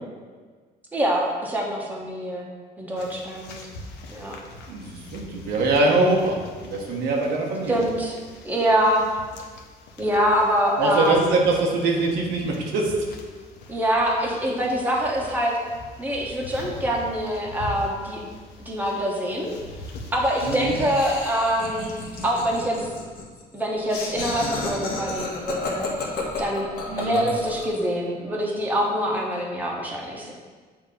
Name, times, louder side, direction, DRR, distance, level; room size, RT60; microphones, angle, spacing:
voice 1, 0.9-2.5 2.8-3.6 4.1-4.4 7.7-8.2 8.4-9.1 10.0-11.3 13.7-15.6 16.0-18.2 18.6-19.5 20.1-21.9 22.2-22.9 23.5-25.9 26.4-26.7 27.0-30.3, equal, 10° right, -2 dB, 1.2 m, -24 dB
sound 1, 3.0-22.6, left 2 dB, 85° left, 0.8 m, -43 dB
voice 2, 4.7-7.8 10.8-12.9 20.4-20.8 26.9-27.2, right 2 dB, 90° right, -1 dB, 1.1 m, -23 dB
Laughter, 20.2-27.8, left 3 dB, 65° left, 1.3 m, -33 dB
7.2 x 3.0 x 5.1 m, 1.5 s
cardioid pair, 110°, 17 cm